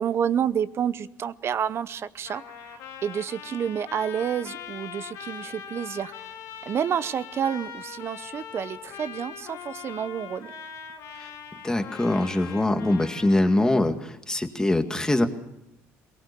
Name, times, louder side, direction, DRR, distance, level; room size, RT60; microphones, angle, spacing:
voice 1, 0.0-6.1 6.7-10.5, right 8 dB, 50° right, 16 dB, 0.8 m, -29 dB
Trumpet, 2.2-13.9, left 7 dB, 75° left, 3.3 m, -41 dB
voice 2, 11.6-15.3, left 1 dB, 10° left, 6 dB, 2.1 m, -23 dB
22.0 x 19.5 x 6.9 m, 0.85 s
supercardioid pair, 90°, 6 cm